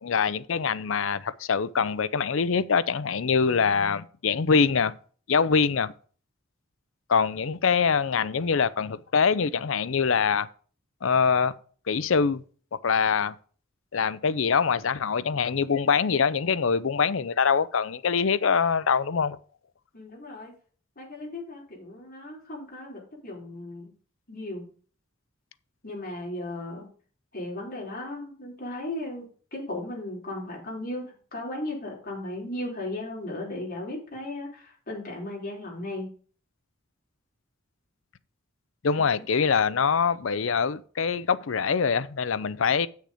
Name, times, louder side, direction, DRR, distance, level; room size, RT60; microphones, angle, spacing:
voice 1, 0.0-4.9 5.3-5.9 7.1-10.5 11.0-11.5 11.9-12.4 12.8-13.3 13.9-19.4 38.8-42.9, left 6 dB, 70° left, 0.5 m, -24 dB
voice 2, 19.9-20.5 21.0-23.9 24.3-24.7 25.8-26.9 27.3-36.1 38.9-39.0, left 1 dB, 45° left, 4.3 m, -36 dB
8.3 x 6.5 x 5.0 m
head